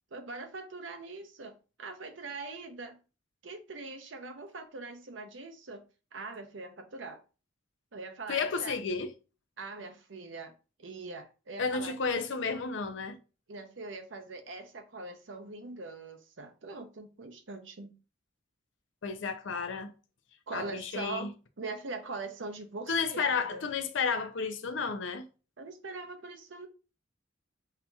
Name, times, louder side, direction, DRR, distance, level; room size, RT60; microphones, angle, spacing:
voice 1, 0.1-3.0 3.4-5.8 6.1-7.2 7.9-8.7 9.6-10.5 10.8-11.9 13.5-17.9 20.5-23.6 25.6-26.7, right 3 dB, 70° right, 0.7 m, -42 dB
voice 2, 8.3-9.1 11.6-13.2 19.0-19.9 20.5-21.3 22.9-25.3, left 5 dB, 70° left, 0.5 m, -32 dB
5.6 x 2.7 x 2.3 m
head